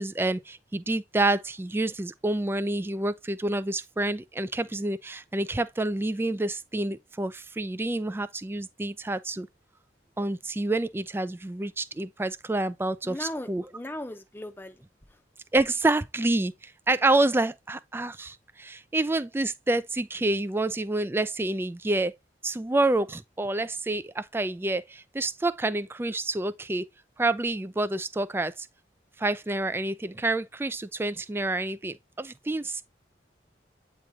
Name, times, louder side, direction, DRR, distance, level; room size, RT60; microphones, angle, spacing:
voice 1, 0.0-9.5 10.2-13.6 15.5-22.1 22.4-26.8 27.2-28.7 29.2-32.8, right 2 dB, 15° right, 0.3 m, -28 dB
voice 2, 13.0-14.8, left 1 dB, 10° left, 0.8 m, -37 dB
8.7 x 3.1 x 3.6 m
head